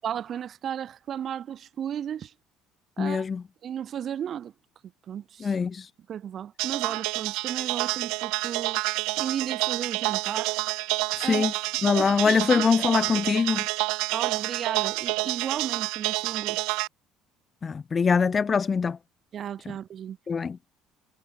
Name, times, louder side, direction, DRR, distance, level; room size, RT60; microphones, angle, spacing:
voice 1, 0.0-2.3 3.0-3.2 3.6-4.5 5.1-5.6 6.1-8.8 9.2-10.6 11.2-11.5 12.2-12.7 14.1-16.8 19.3-20.2, right 9 dB, 35° right, 3.4 m, -34 dB
voice 2, 3.0-3.4 5.4-5.9 11.2-11.5 11.8-13.6 17.6-19.0 20.3-20.6, left 5 dB, 20° left, 0.5 m, -23 dB
sound 1, 6.6-16.9, right 25 dB, 80° right, 1.2 m, -28 dB
cardioid pair, 165°, 0 cm